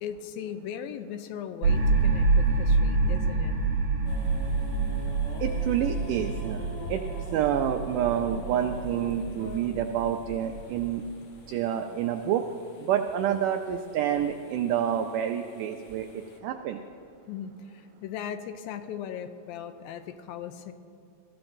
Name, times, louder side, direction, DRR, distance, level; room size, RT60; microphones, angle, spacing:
voice 1, 0.0-3.6 17.3-20.7, left 8 dB, 80° left, 9 dB, 2.3 m, -38 dB
sound 1, 1.6-11.0, right 3 dB, 65° right, 3.7 m, -27 dB
sound 2, 4.0-16.4, left 3 dB, 65° left, 1.5 m, -46 dB
voice 2, 5.4-7.0 7.3-11.0 11.5-12.5 12.8-16.8, right 9 dB, 85° right, 6 dB, 1.8 m, -28 dB
21.5 x 14.5 x 2.6 m, 2.8 s
omnidirectional pair, 4.3 m